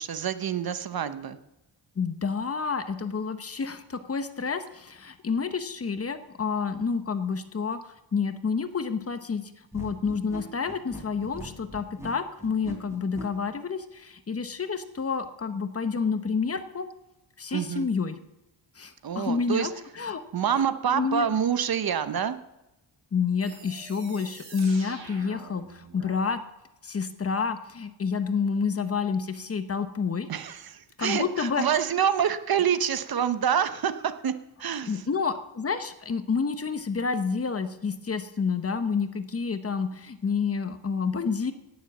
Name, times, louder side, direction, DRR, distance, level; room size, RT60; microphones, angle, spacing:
voice 1, 0.0-1.4 17.5-17.9 19.0-19.7 20.3-22.4 30.3-34.3 34.6-35.0, right 8 dB, 55° right, 12 dB, 0.8 m, -27 dB
voice 2, 2.0-16.9 17.4-18.2 18.8-20.2 20.9-21.2 23.1-26.4 26.8-30.3 31.0-31.6 34.8-41.5, left 5 dB, 30° left, 10 dB, 0.9 m, -29 dB
sound 1, 9.7-13.3, equal, 5° right, 3.5 m, -40 dB
sound 2, 23.4-26.3, right 3 dB, 90° right, 4.5 m, -46 dB
18.0 x 7.4 x 7.2 m, 0.94 s
wide cardioid pair, 155°, 45 cm